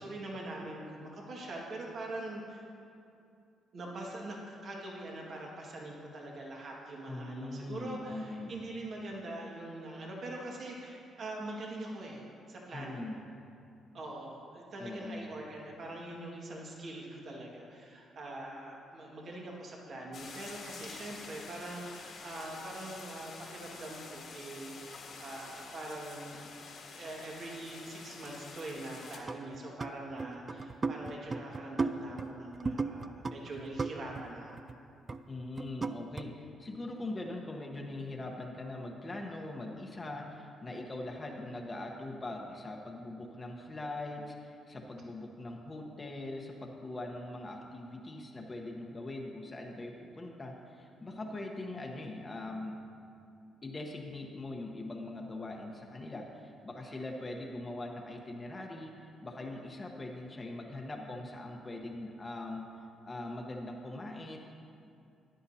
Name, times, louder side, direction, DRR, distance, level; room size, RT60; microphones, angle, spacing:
voice 1, 0.0-2.6 3.7-13.1 13.9-26.4 26.9-34.5, right 2 dB, 55° right, -2 dB, 1.9 m, -43 dB
voice 2, 7.1-8.5 12.7-13.2 14.8-15.2 35.3-52.7 53.6-62.7 63.0-64.4, left 2 dB, 25° left, 0 dB, 1.1 m, -41 dB
sound 1, 20.1-29.2, left 4 dB, 65° left, 1.7 m, -48 dB
sound 2, 29.3-29.9 30.2-34.2 34.5-34.7 35.1-35.2 35.6-36.2, right 4 dB, 30° right, 0.4 m, -35 dB
14.0 x 10.5 x 2.8 m, 2.5 s
cardioid pair, 90°, 0 cm